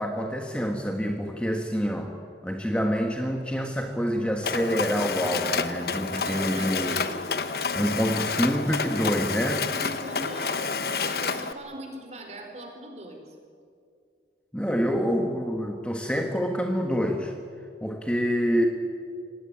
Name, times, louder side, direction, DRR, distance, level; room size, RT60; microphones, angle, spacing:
voice 1, 0.0-2.1 2.4-6.9 7.7-9.7 14.5-17.3 17.8-18.7, equal, 5° left, 3 dB, 1.4 m, -27 dB
Mechanisms, 4.4-11.5, left 5 dB, 55° left, 1.1 m, -29 dB
voice 2, 6.2-7.3 9.7-13.3, right 1 dB, 40° right, 3 dB, 4.5 m, -40 dB
25.5 x 18.0 x 10.0 m, 2.3 s
head